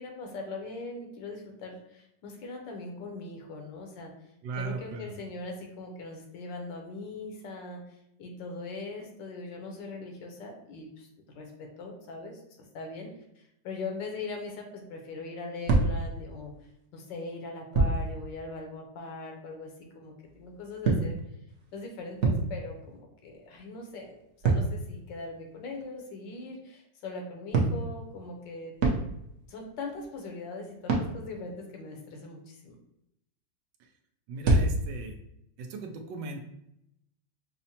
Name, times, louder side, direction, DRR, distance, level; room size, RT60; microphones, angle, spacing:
voice 1, 0.0-4.1 4.5-7.8 8.2-16.5 16.9-21.2 21.7-28.8 29.5-32.7, left 3 dB, 80° left, 2 dB, 1.4 m, -41 dB
voice 2, 4.4-5.1 34.3-35.2 35.6-36.4, right 4 dB, 85° right, 4 dB, 1.3 m, -37 dB
sound 1, 15.6-16.7 17.7-18.1 20.2-22.9 23.2-25.9 27.5-29.5 29.9-30.3 30.9-31.2 34.4-35.0, right 3 dB, 60° right, 0.8 m, -28 dB
5.6 x 2.1 x 2.8 m, 0.79 s
omnidirectional pair, 2.0 m